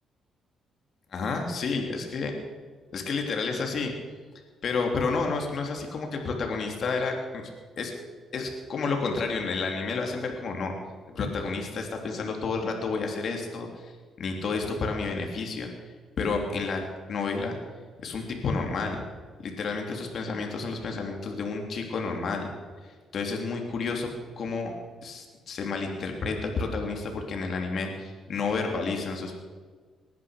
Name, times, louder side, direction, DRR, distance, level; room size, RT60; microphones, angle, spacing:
voice 1, 1.1-2.3 2.9-3.9 4.6-7.5 7.8-7.9 8.3-10.7 11.1-13.9 14.2-15.7 16.2-16.8 17.1-17.6 18.0-19.0 19.4-22.5 23.1-24.1 24.4-24.7 25.0-29.4, left 4 dB, 55° left, 2 dB, 3.3 m, -30 dB
19.5 x 11.0 x 6.7 m, 1.5 s
cardioid pair, 90°, 0 cm